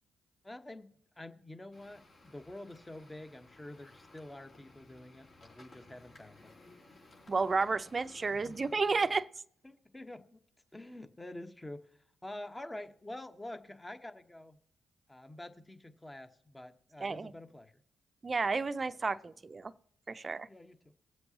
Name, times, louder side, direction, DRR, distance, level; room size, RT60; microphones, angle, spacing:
voice 1, 0.4-0.9 1.2-6.5 8.3-8.7 9.6-10.4 10.7-11.9 12.2-14.6 15.1-17.7 20.3-20.9, left 1 dB, 15° left, 1.2 m, -47 dB
sound 1, 1.7-9.2, left 2 dB, 55° left, 4.1 m, -58 dB
voice 2, 7.3-9.3 17.0-17.3 18.2-19.7 20.1-20.5, right 4 dB, 40° right, 0.6 m, -32 dB
21.5 x 7.8 x 2.9 m
supercardioid pair, 50°, 0 cm